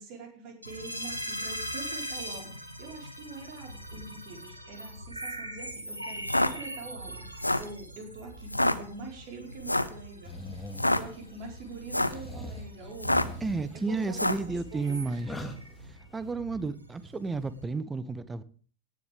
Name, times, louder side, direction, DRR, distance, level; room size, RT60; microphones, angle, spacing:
voice 1, 0.0-13.4 13.7-15.2, right 3 dB, 40° right, 1 dB, 4.8 m, -45 dB
sound 1, 0.6-17.7, equal, 85° right, 2.2 m, -42 dB
sound 2, 6.2-6.5 7.3-7.7 8.5-8.8 9.6-10.0 10.7-11.0 11.8-12.2 13.0-13.4 14.1-14.5, left 1 dB, 85° left, 0.8 m, -26 dB
sound 3, 10.2-11.5 11.9-16.3, equal, 5° left, 2.1 m, -43 dB
voice 2, 13.4-15.3 15.9-18.4, right 3 dB, 15° right, 15 dB, 1.0 m, -32 dB
17.5 x 10.0 x 3.6 m, 0.42 s
figure-of-eight pair, 90°, 0 cm